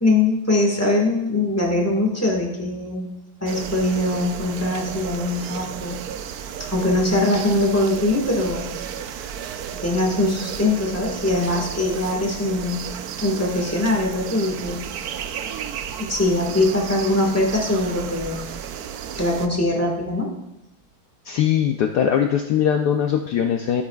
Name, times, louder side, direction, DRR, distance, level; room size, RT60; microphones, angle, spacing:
voice 1, 0.0-3.1 3.4-6.0 6.6-8.7 9.7-12.9 13.2-14.8 16.0-18.4 19.1-20.3, left 2 dB, 10° left, -1 dB, 1.2 m, -22 dB
sound 1, 3.5-19.5, right 8 dB, 85° right, 0.8 m, -33 dB
voice 2, 21.2-23.8, left 9 dB, 75° left, 4 dB, 0.9 m, -21 dB
13.0 x 8.3 x 2.3 m, 0.90 s
omnidirectional pair, 2.2 m